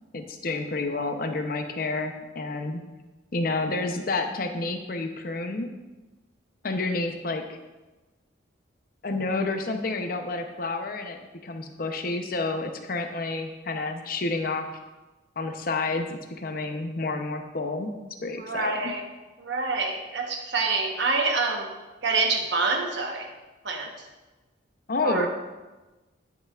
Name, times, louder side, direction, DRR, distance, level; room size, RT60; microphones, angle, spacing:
voice 1, 0.1-2.8 3.3-5.7 6.6-7.6 9.0-14.7 15.4-17.9 18.2-18.9 24.9-25.3, left 3 dB, 45° left, 6 dB, 0.7 m, -29 dB
voice 2, 18.4-19.1 19.4-21.7 22.0-23.3 23.6-24.1 25.0-25.3, right 3 dB, 65° right, 2 dB, 1.1 m, -26 dB
11.0 x 6.7 x 2.4 m, 1.1 s
head